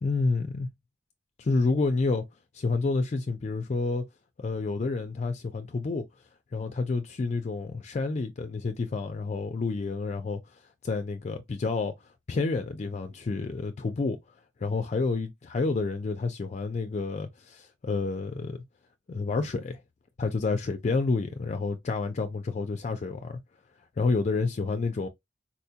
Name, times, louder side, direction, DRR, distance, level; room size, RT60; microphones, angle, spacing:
voice 1, 0.0-0.7 1.4-2.2 2.5-4.0 4.4-6.1 6.5-11.9 12.3-14.2 14.6-18.6 19.1-19.8 20.2-23.4 24.0-25.1, left 3 dB, 40° left, 0.4 m, -29 dB
4.2 x 2.2 x 2.7 m
head